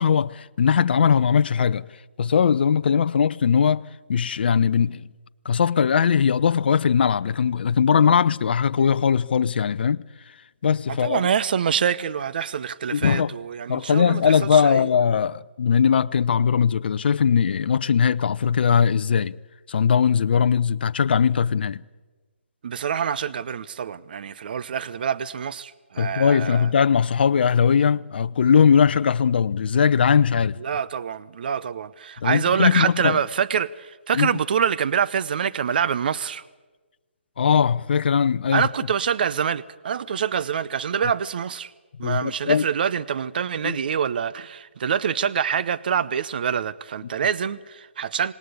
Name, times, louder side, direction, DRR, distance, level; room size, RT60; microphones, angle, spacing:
voice 1, 0.0-1.9 2.2-5.0 5.4-10.0 10.6-11.3 12.9-13.3 13.7-19.3 19.7-21.8 26.0-30.6 32.2-33.2 34.1-34.3 37.4-38.7 42.0-42.6 43.6-43.8, left 7 dB, 55° left, 0.7 m, -20 dB
voice 2, 11.0-14.9 22.6-26.7 30.6-36.4 38.5-41.7 42.0-48.3, right 7 dB, 50° right, 0.8 m, -25 dB
27.0 x 19.0 x 8.4 m
figure-of-eight pair, 150°, 7 cm